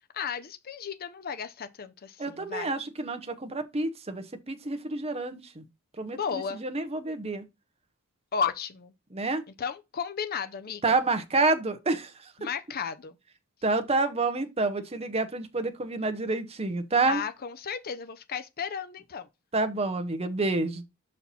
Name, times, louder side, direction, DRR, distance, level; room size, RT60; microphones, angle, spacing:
voice 1, 0.1-2.7 6.1-6.6 8.3-8.9 9.6-11.0 12.4-13.1 17.1-19.3, left 6 dB, 45° left, 0.6 m, -34 dB
voice 2, 2.2-5.6 6.0-7.4 9.1-9.4 10.8-12.3 13.6-17.2 19.5-20.9, right 3 dB, 30° right, 0.8 m, -28 dB
5.8 x 4.2 x 4.1 m
head